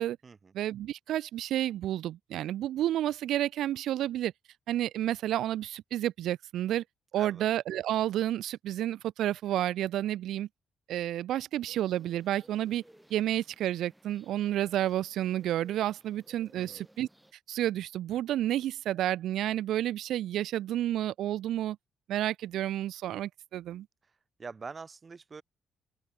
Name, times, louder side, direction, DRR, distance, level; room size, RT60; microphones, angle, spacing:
voice 1, 0.5-4.3 4.7-6.8 7.1-10.5 10.9-12.8 13.1-17.1 17.5-21.8 22.1-23.9, right 12 dB, 80° right, 0.3 m, -30 dB
sound 1, 11.7-17.3, right 1 dB, 5° right, 1.3 m, -59 dB
voice 2, 24.0-25.4, right 4 dB, 35° right, 0.6 m, -45 dB
open air
cardioid pair, 90°, 0 cm